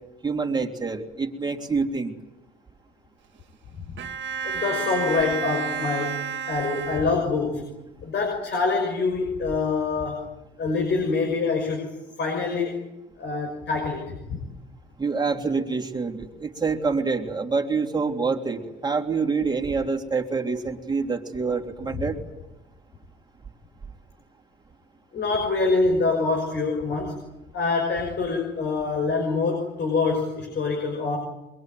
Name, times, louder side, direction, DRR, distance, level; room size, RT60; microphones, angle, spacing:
voice 1, 0.2-2.1 15.0-22.2, right 4 dB, 20° right, 0 dB, 3.4 m, -26 dB
Bowed string instrument, 4.0-7.6, right 6 dB, 70° right, 1.7 m, -31 dB
voice 2, 4.4-6.2 6.5-7.6 8.0-10.3 10.6-11.9 12.2-12.8 13.2-14.4 25.1-27.2 27.5-31.2, left 4 dB, 60° left, 2 dB, 5.9 m, -25 dB
23.0 x 22.5 x 9.3 m, 0.98 s
cardioid pair, 90°, 20 cm